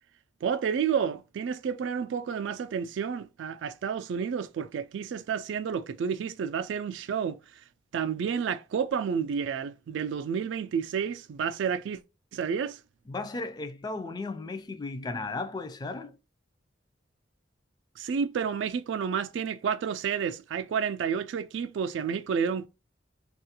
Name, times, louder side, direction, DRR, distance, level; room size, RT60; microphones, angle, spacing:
voice 1, 0.4-7.6 7.9-12.0 12.3-12.8 18.0-22.7, right 7 dB, 80° right, 0.3 m, -30 dB
voice 2, 13.1-16.2, left 3 dB, 20° left, 0.3 m, -35 dB
3.4 x 2.4 x 2.8 m
head